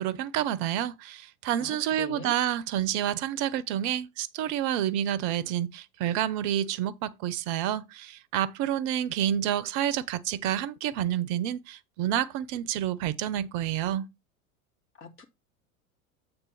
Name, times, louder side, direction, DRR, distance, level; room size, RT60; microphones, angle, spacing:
voice 1, 0.0-14.1, right 11 dB, 45° right, 0.9 m, -29 dB
voice 2, 1.6-2.4 14.9-15.2, left 4 dB, 30° left, 2.3 m, -43 dB
8.2 x 3.7 x 5.7 m
figure-of-eight pair, 80°, 43 cm